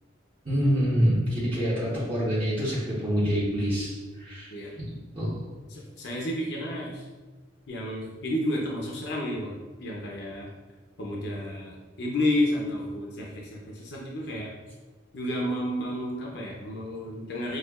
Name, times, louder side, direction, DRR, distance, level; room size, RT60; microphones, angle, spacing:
voice 1, 0.4-4.5 5.1-5.3, equal, 30° right, -11 dB, 1.0 m, -26 dB
voice 2, 5.7-7.1 7.7-10.5 11.0-14.5 15.1-17.6, left 1 dB, 60° left, -2 dB, 0.6 m, -31 dB
6.4 x 2.4 x 2.4 m, 1.3 s
head